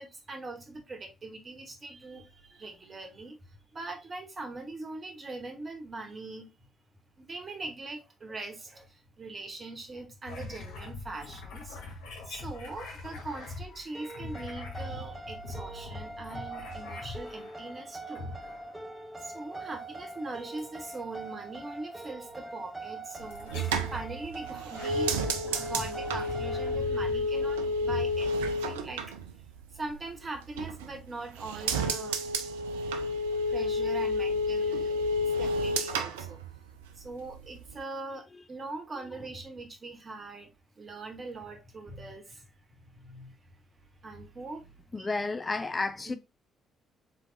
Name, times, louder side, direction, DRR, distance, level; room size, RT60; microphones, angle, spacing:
voice 1, 0.0-3.4 3.7-6.5 7.2-11.8 12.2-18.2 19.2-23.5 23.9-25.1 25.6-29.2 29.7-32.2 33.3-36.4 37.0-43.3 44.0-44.6 44.9-45.1 46.1-46.2, right 2 dB, 35° right, 1.2 m, -41 dB
sound 1, 10.3-17.7 18.1-18.9 20.6-21.0 22.0-22.2 23.3-24.1 24.5-28.9, left 3 dB, 65° left, 1.0 m, -42 dB
sound 2, 13.9-26.8, right 2 dB, 10° right, 0.8 m, -43 dB
sound 3, 23.2-30.0 30.4-31.1 31.4-37.1 37.3-37.8, equal, 75° right, 0.3 m, -31 dB
voice 2, 44.9-46.1, left 3 dB, 25° left, 0.3 m, -31 dB
4.0 x 3.4 x 2.7 m
figure-of-eight pair, 40°, 0 cm